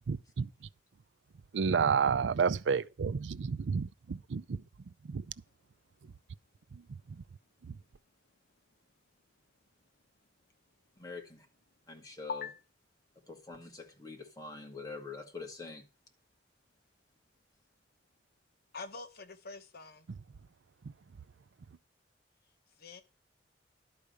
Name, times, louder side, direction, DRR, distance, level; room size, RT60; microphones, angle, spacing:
voice 1, 0.1-0.5 1.5-4.6 5.0-5.3 6.7-6.8 7.1-7.2 7.6-7.8, right 6 dB, 85° right, 0.5 m, -30 dB
voice 2, 11.0-11.5 11.9-12.5 13.3-15.9, left 3 dB, 20° left, 2.2 m, -45 dB
voice 3, 18.7-20.1 22.8-23.0, left 4 dB, 60° left, 1.1 m, -42 dB
12.0 x 4.9 x 6.8 m
head